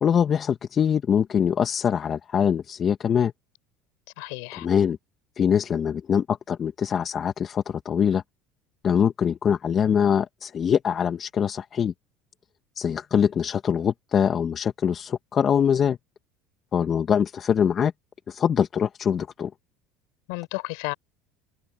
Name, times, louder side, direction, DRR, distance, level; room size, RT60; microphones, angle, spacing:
voice 1, 0.0-3.3 4.5-5.0 5.4-8.2 8.8-11.9 12.8-16.0 16.7-17.9 18.3-19.5, left 8 dB, 40° left, 2.0 m, -23 dB
voice 2, 4.2-4.7 20.3-20.9, left 32 dB, 75° left, 5.3 m, -32 dB
supercardioid pair, 90°, 0 cm